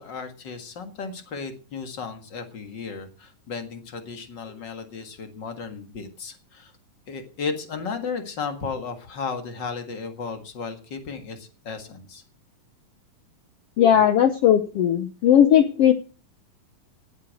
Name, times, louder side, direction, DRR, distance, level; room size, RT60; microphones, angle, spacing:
voice 1, 0.0-6.7 7.1-12.2, left 5 dB, 40° left, 7 dB, 1.9 m, -34 dB
voice 2, 13.8-15.9, left 9 dB, 85° left, 10 dB, 1.3 m, -17 dB
18.0 x 8.3 x 6.4 m, 0.37 s
omnidirectional pair, 3.9 m